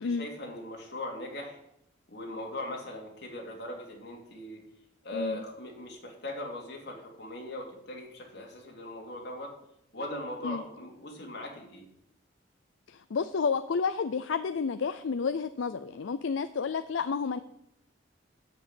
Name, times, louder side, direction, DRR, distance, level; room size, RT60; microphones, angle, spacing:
voice 1, 0.0-1.6 2.1-4.6 5.0-9.5 9.9-11.9, left 1 dB, 65° left, 0 dB, 2.7 m, -39 dB
voice 2, 12.9-17.4, left 5 dB, 80° left, 12 dB, 0.5 m, -30 dB
8.5 x 7.4 x 8.3 m, 0.79 s
head